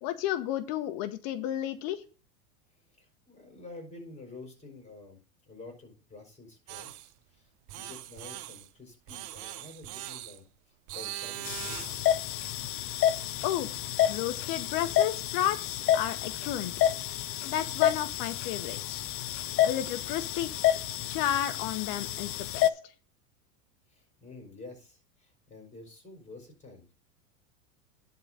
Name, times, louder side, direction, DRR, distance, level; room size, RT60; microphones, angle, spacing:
voice 1, 0.0-2.0 13.4-13.7 14.1-16.7 17.4-19.1 19.6-20.5 21.1-22.7, left 11 dB, 50° left, 11 dB, 1.0 m, -32 dB
voice 2, 2.7-12.1 23.9-27.0, left 3 dB, 15° left, 3 dB, 4.4 m, -49 dB
sound 1, 6.7-7.1 7.7-8.7 9.1-10.4 10.9-12.1, right 15 dB, 45° right, 0.8 m, -41 dB
sound 2, 11.5-22.7, left 12 dB, 30° left, 0.6 m, -29 dB
10.5 x 4.0 x 6.3 m, 0.35 s
hypercardioid pair, 110°, 43 cm